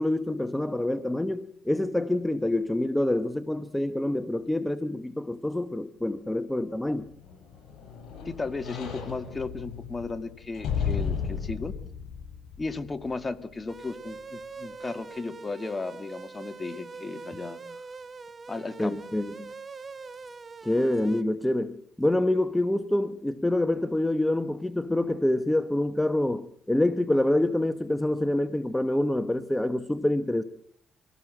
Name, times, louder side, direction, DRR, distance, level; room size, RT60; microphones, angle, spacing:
voice 1, 0.0-7.1 18.8-19.5 20.6-30.4, left 1 dB, 10° left, 1.1 m, -26 dB
sound 1, 7.0-13.3 13.7-13.8, left 7 dB, 80° left, 7.4 m, -34 dB
voice 2, 8.3-11.8 12.6-17.6 18.5-19.0, left 3 dB, 25° left, 1.9 m, -35 dB
sound 2, 13.7-21.2, right 4 dB, 35° right, 1.6 m, -43 dB
24.5 x 18.0 x 7.7 m
cardioid pair, 90°, 0 cm